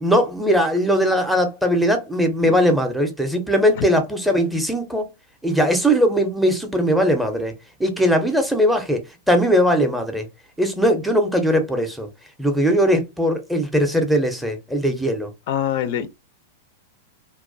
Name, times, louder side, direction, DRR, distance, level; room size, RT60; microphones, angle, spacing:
voice 1, 0.0-5.1 5.4-7.5 7.8-9.0 9.3-10.3 10.6-12.1 12.4-15.3, equal, ahead, 0.5 m, -19 dB
voice 2, 15.5-16.1, left 10 dB, 60° left, 0.4 m, -25 dB
2.3 x 2.1 x 2.5 m
hypercardioid pair, 130°, 0 cm